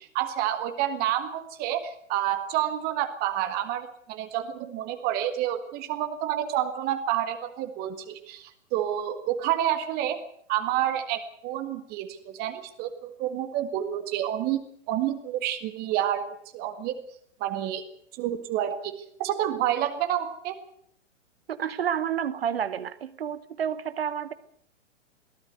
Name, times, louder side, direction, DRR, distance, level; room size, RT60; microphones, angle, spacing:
voice 1, 0.0-10.2 10.5-14.6 14.9-16.3 16.5-17.0 17.4-17.8 18.1-18.9 19.2-20.6, right 11 dB, 25° right, 9 dB, 1.8 m, -29 dB
voice 2, 21.5-24.3, right 8 dB, 55° right, 15 dB, 1.2 m, -30 dB
22.5 x 15.5 x 8.1 m, 0.67 s
figure-of-eight pair, 115°, 36 cm